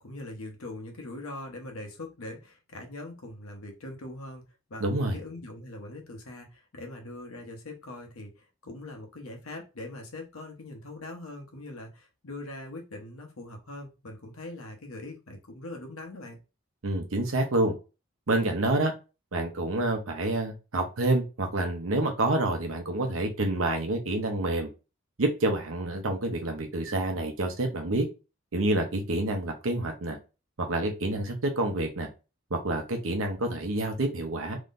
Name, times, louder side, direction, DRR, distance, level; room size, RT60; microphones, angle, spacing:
voice 1, 0.0-4.4 4.7-16.4, left 2 dB, 85° left, 3 dB, 1.0 m, -42 dB
voice 2, 4.8-5.2 16.8-17.7 18.3-18.9 19.3-24.7 25.2-28.1 28.5-30.2 30.6-32.1 32.5-34.6, right 2 dB, 75° right, 3 dB, 0.8 m, -28 dB
3.8 x 3.1 x 2.5 m, 0.30 s
head